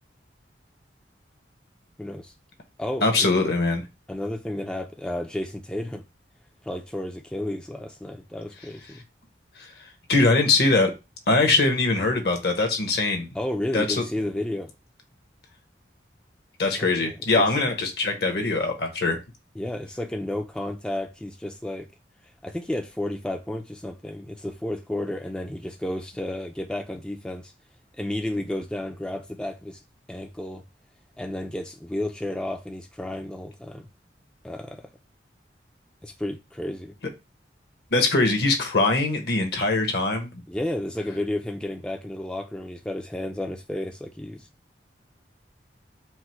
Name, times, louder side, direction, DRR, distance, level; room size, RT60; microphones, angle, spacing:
voice 1, 2.0-2.3 2.8-3.3 4.1-6.0 6.6-9.0 13.3-14.7 16.8-17.2 19.6-21.9 22.4-27.5 27.9-29.8 30.1-30.6 31.2-33.9 34.4-34.8 36.0-36.9 40.5-44.5, left 1 dB, 5° left, 0.3 m, -32 dB
voice 2, 3.0-3.8 9.6-9.7 10.1-10.9 11.3-13.3 13.7-14.0 16.6-19.2 37.9-40.3, left 3 dB, 65° left, 1.0 m, -22 dB
4.6 x 2.0 x 4.3 m
head